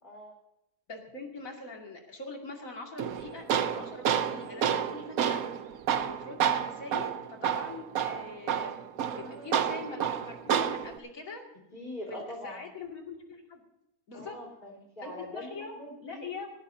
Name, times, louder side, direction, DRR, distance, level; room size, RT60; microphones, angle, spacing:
voice 1, 0.0-0.3 5.9-6.2 9.1-9.8 11.7-12.7 14.1-16.2, left 1 dB, 30° left, -1 dB, 4.7 m, -43 dB
voice 2, 0.9-5.4 5.9-8.8 9.1-11.4 12.1-13.6 14.1-14.4 15.0-15.7 16.0-16.5, left 3 dB, 65° left, 1 dB, 2.9 m, -43 dB
Tools, 3.0-11.0, right 8 dB, 75° right, 1.2 m, -30 dB
21.0 x 15.0 x 2.8 m, 0.89 s
omnidirectional pair, 1.6 m